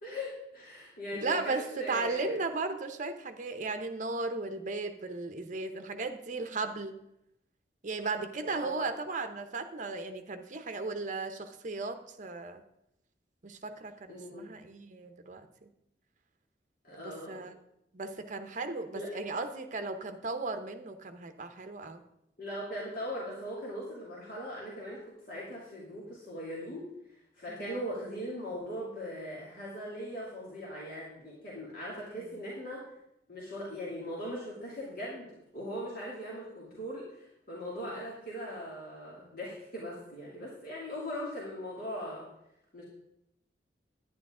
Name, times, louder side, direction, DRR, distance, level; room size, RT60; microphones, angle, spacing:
voice 1, 0.0-2.4 8.4-8.9 14.1-14.5 16.8-17.4 18.9-19.1 22.4-32.8 33.3-42.3 42.7-42.8, equal, 55° left, -6 dB, 2.6 m, -40 dB
voice 2, 1.1-6.9 7.8-12.6 13.4-15.7 17.0-17.5 17.9-22.0 27.5-27.8 32.1-32.2 37.8-38.0, right 3 dB, 45° right, 8 dB, 0.8 m, -36 dB
11.0 x 10.0 x 3.7 m, 0.82 s
head